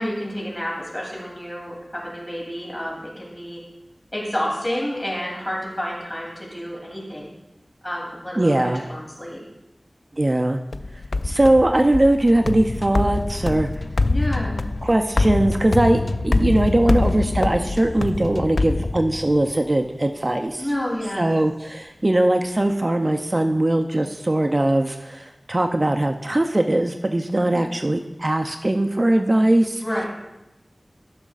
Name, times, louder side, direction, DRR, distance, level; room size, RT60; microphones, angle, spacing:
voice 1, 0.0-3.6 4.1-7.3 7.8-9.4 14.1-14.6 20.6-21.3 27.4-27.6 29.8-30.1, equal, 25° left, -3 dB, 3.0 m, -29 dB
voice 2, 8.4-8.9 10.1-10.6 11.2-13.7 14.8-20.7 21.1-29.8, right 1 dB, 40° right, 5 dB, 0.5 m, -20 dB
sound 1, 10.7-19.5, left 2 dB, 75° left, 0.3 m, -24 dB
14.0 x 6.2 x 2.4 m, 0.93 s
wide cardioid pair, 55°, 0 cm